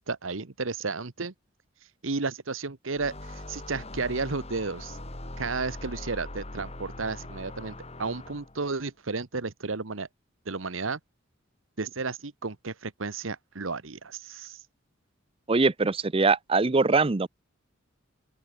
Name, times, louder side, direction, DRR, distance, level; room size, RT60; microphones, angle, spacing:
voice 1, 0.0-1.3 2.0-5.0 5.4-10.1 10.4-11.0 11.8-14.6, right 4 dB, 80° right, 1.3 m, -33 dB
sound 1, 2.9-8.7, left 1 dB, 30° left, 3.4 m, -41 dB
voice 2, 15.5-17.3, right 3 dB, 30° right, 0.6 m, -22 dB
open air
head